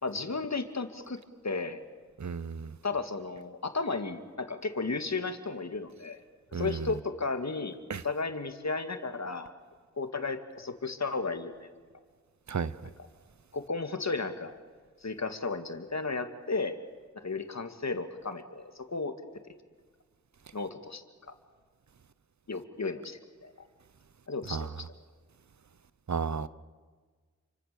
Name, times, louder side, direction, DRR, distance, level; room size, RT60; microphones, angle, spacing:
voice 1, 0.0-1.2 1.4-1.8 2.8-6.2 6.5-9.5 10.0-11.7 13.5-14.6 15.0-16.8 17.1-19.4 20.5-21.3 22.5-23.5 24.3-24.9, left 3 dB, 65° left, 2.2 m, -34 dB
voice 2, 2.2-2.7 6.5-6.8 7.9-8.0 12.5-12.7 24.5-24.7 26.1-26.5, right 5 dB, 70° right, 0.9 m, -32 dB
29.5 x 24.5 x 7.0 m
cardioid pair, 45°, 29 cm